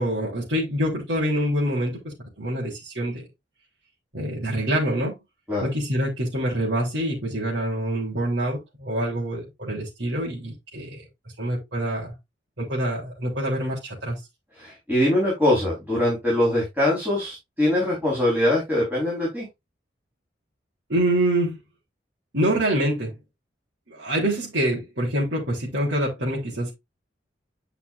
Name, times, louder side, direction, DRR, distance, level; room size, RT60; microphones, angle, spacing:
voice 1, 0.0-3.3 4.1-5.2 5.6-11.0 11.4-12.1 12.6-14.2 20.9-21.6 22.3-23.2 23.9-26.7, right 1 dB, 75° right, 3.6 m, -26 dB
voice 2, 14.5-19.5, left 1 dB, 10° right, 4.5 m, -22 dB
10.0 x 5.8 x 2.6 m
head